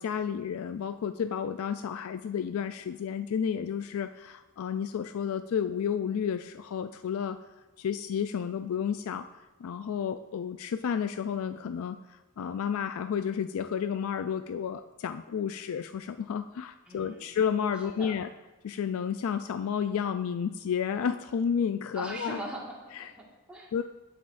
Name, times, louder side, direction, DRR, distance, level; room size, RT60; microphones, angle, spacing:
voice 1, 0.0-7.4 7.8-9.3 9.6-18.3 18.6-22.4 23.0-23.1 23.7-23.8, left 7 dB, 70° left, 10 dB, 0.3 m, -31 dB
voice 2, 16.9-17.3 17.8-18.2 21.9-23.7, right 1 dB, 5° right, -4 dB, 1.6 m, -41 dB
17.5 x 5.9 x 2.5 m, 1.2 s
head